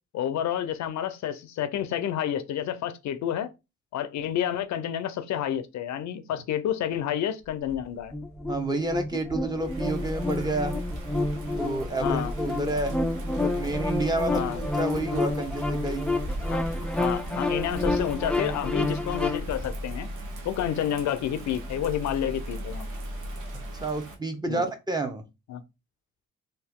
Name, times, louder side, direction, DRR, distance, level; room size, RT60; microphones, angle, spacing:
voice 1, 0.1-3.5 3.9-8.1 12.0-12.3 14.3-14.6 16.5-20.1 20.4-22.9 24.5-24.6 25.5-25.6, left 10 dB, 70° left, 0.6 m, -30 dB
sound 1, 7.4-19.7, right 1 dB, 35° right, 1.1 m, -41 dB
sound 2, 8.1-19.4, left 2 dB, 5° left, 0.3 m, -30 dB
voice 2, 8.5-10.8 11.6-13.0 13.4-16.1 23.8-25.2, right 2 dB, 15° right, 0.8 m, -29 dB
Bird vocalization bird call bird song / Rain, 9.5-24.1, right 1 dB, 90° right, 1.0 m, -37 dB
2.9 x 2.8 x 3.5 m
cardioid pair, 90°, 30 cm